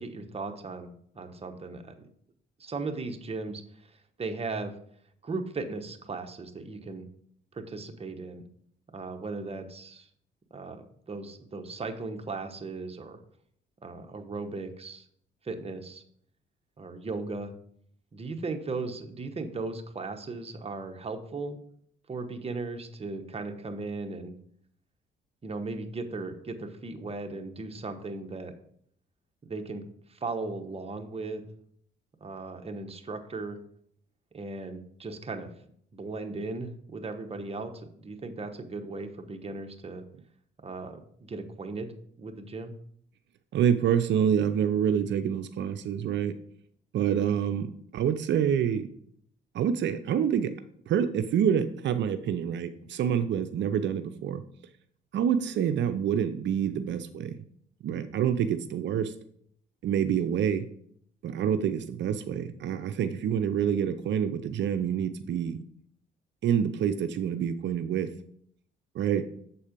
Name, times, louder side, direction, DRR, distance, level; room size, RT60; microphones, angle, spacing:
voice 1, 0.0-2.1 2.6-3.6 3.9-4.7 5.2-7.1 7.5-8.4 8.9-10.1 10.5-13.2 13.8-15.0 15.4-16.0 16.8-17.5 18.1-21.6 22.1-24.3 25.4-28.5 29.4-29.8 30.1-31.4 32.2-33.6 34.3-35.5 35.9-40.0 40.6-41.9 42.2-42.7, right 3 dB, 30° right, 6 dB, 1.0 m, -37 dB
voice 2, 43.5-46.4 46.9-48.9 49.5-50.5 50.9-54.4 55.1-57.4 57.8-59.1 59.8-60.7 61.2-65.6 66.4-68.1 68.9-69.2, right 8 dB, 65° right, 9 dB, 0.6 m, -27 dB
7.4 x 4.2 x 5.1 m, 0.65 s
cardioid pair, 85°, 20 cm